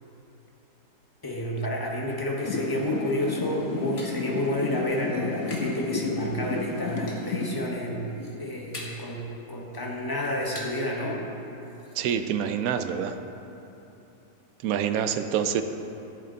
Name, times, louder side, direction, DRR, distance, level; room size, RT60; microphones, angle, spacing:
voice 1, 1.2-11.2, left 1 dB, 15° left, -2 dB, 0.8 m, -30 dB
sound 1, 2.4-7.5, left 3 dB, 55° left, 1.0 m, -32 dB
sound 2, 4.0-5.8 6.1-6.6 7.1-7.6 7.9-9.2 9.5-10.9 11.2-11.3 11.6-12.1, left 1 dB, 35° left, 1.5 m, -44 dB
voice 2, 12.0-13.2 14.6-15.6, right 8 dB, 75° right, 8 dB, 0.8 m, -26 dB
14.0 x 7.7 x 3.9 m, 3.0 s
omnidirectional pair, 2.0 m